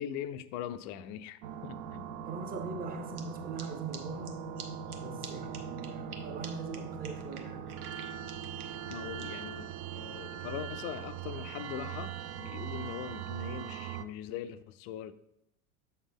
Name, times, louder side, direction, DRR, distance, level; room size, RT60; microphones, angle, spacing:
voice 1, 0.0-2.1 8.9-15.1, left 10 dB, 40° left, 0.4 m, -41 dB
sound 1, 1.4-14.1, right 8 dB, 40° right, 0.4 m, -41 dB
voice 2, 2.2-4.5 5.0-7.7, right 3 dB, 20° right, 0.9 m, -41 dB
sound 2, 3.1-3.2 3.6-3.7 3.9-4.0 4.2-4.3 4.6-4.7 4.9-5.0 5.2-5.3 5.5-6.2 6.4-6.5 6.7-6.8 7.0-9.2, right 7 dB, 85° right, 0.9 m, -46 dB
7.0 x 4.4 x 3.5 m
hypercardioid pair, 90°, 43 cm